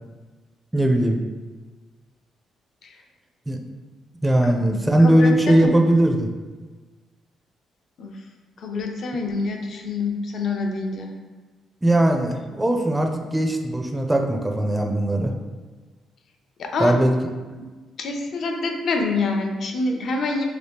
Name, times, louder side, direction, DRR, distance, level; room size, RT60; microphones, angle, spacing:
voice 1, 0.7-1.2 3.5-3.6 4.2-6.3 11.8-15.3 16.8-17.2, right 1 dB, 10° right, 3 dB, 0.4 m, -19 dB
voice 2, 4.4-5.7 8.0-8.1 8.6-11.1 16.6-17.0 17.5-17.7 18.0-20.5, left 3 dB, 60° left, 3 dB, 0.5 m, -26 dB
3.1 x 2.8 x 3.4 m, 1.3 s
cardioid pair, 90°, 0 cm